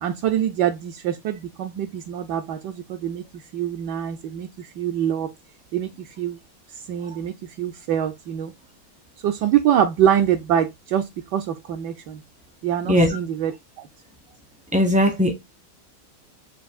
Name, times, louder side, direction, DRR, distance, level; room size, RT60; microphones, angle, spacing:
voice 1, 0.0-3.2 3.5-5.3 5.7-6.4 6.9-8.5 9.2-11.0 11.3-12.2 12.6-13.5, right 10 dB, 75° right, 1.0 m, -24 dB
voice 2, 14.7-15.3, equal, 10° right, 0.4 m, -19 dB
5.9 x 2.5 x 2.3 m
omnidirectional pair, 2.1 m